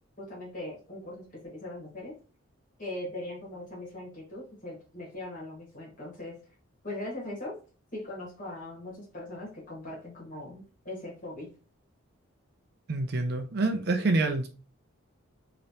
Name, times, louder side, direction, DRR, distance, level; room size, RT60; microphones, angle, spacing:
voice 1, 0.2-1.2 1.5-2.1 2.8-6.3 6.8-7.5 7.9-11.5, left 1 dB, 40° left, 1.5 m, -40 dB
voice 2, 12.9-14.5, right 2 dB, 50° right, 0.5 m, -27 dB
3.2 x 2.9 x 2.7 m
head